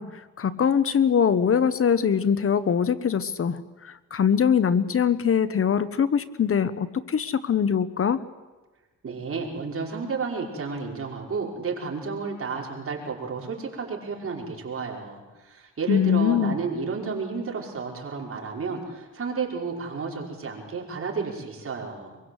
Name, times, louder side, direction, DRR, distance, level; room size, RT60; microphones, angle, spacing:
voice 1, 0.0-8.2 15.9-16.6, left 7 dB, 50° left, 15 dB, 1.0 m, -23 dB
voice 2, 9.0-22.2, right 4 dB, 50° right, -1 dB, 5.5 m, -32 dB
24.5 x 22.5 x 8.1 m, 1.2 s
cardioid pair, 100°, 30 cm